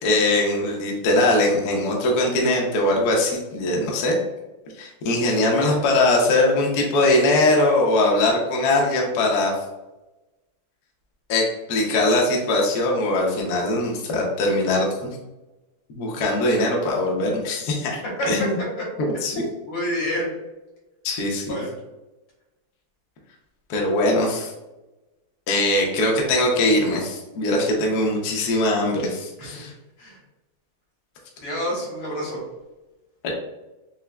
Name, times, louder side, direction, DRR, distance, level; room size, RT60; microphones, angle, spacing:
voice 1, 0.0-4.1 4.8-9.5 11.3-14.9 15.9-18.0 18.3-18.6 19.0-19.4 21.0-21.6 23.7-24.5 25.5-29.7 33.2-33.3, left 2 dB, 65° left, 0 dB, 1.1 m, -21 dB
voice 2, 19.7-20.4 21.5-21.7 29.4-29.6 30.0-30.2 31.4-32.4, equal, 80° left, -4 dB, 2.1 m, -28 dB
5.5 x 2.0 x 2.2 m, 1.0 s
omnidirectional pair, 2.3 m